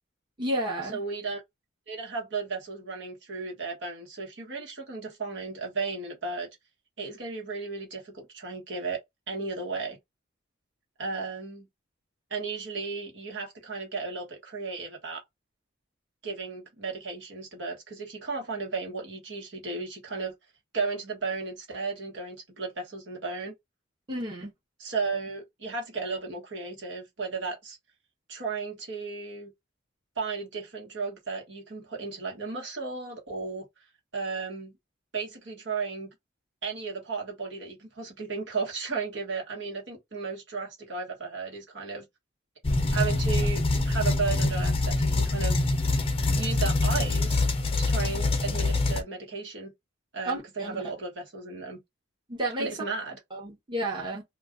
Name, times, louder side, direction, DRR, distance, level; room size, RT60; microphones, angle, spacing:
voice 1, 0.4-1.0 24.1-24.5 50.2-50.8 52.3-52.8 53.3-54.2, right 1 dB, 25° right, 1.0 m, -31 dB
voice 2, 0.9-1.4 1.9-6.5 7.0-9.0 9.3-10.0 11.0-11.7 12.3-15.2 16.2-20.3 20.7-23.5 24.8-27.8 28.3-29.5 30.2-33.6 34.1-34.7 35.1-36.1 36.6-42.0 42.9-45.6 46.3-47.4 47.9-49.7 50.1-51.8 52.6-53.2, right 4 dB, 70° right, 1.4 m, -34 dB
sound 1, 42.6-49.0, left 2 dB, 30° left, 0.5 m, -25 dB
2.5 x 2.4 x 3.6 m
head